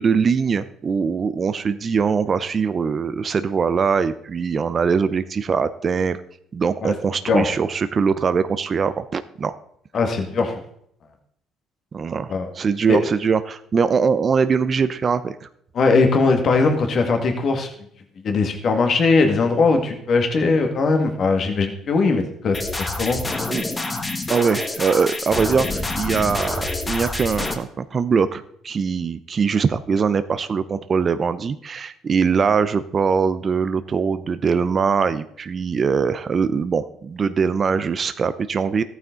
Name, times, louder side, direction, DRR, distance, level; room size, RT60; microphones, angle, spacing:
voice 1, 0.0-6.2 6.5-9.6 11.9-15.5 23.5-23.6 24.3-38.8, right 5 dB, 40° right, 12 dB, 0.7 m, -22 dB
voice 2, 9.9-10.6 12.3-12.5 12.9-13.0 15.8-17.7 18.2-23.2, left 4 dB, 50° left, 5 dB, 2.0 m, -20 dB
sound 1, 22.5-27.5, left 2 dB, 20° left, 1.6 m, -27 dB
14.0 x 9.3 x 4.0 m, 0.69 s
cardioid pair, 95°, 0 cm